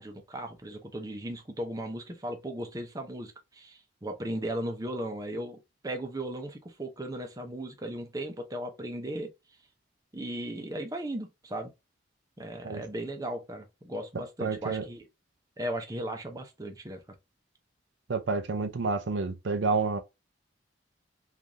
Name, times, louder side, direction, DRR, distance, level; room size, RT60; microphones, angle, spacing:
voice 1, 0.0-5.6 5.8-9.3 10.1-11.7 12.4-15.1 15.6-17.0, right 1 dB, 20° right, 0.7 m, -36 dB
voice 2, 14.4-14.8 18.1-20.0, right 4 dB, 75° right, 0.5 m, -29 dB
3.8 x 2.6 x 2.9 m
head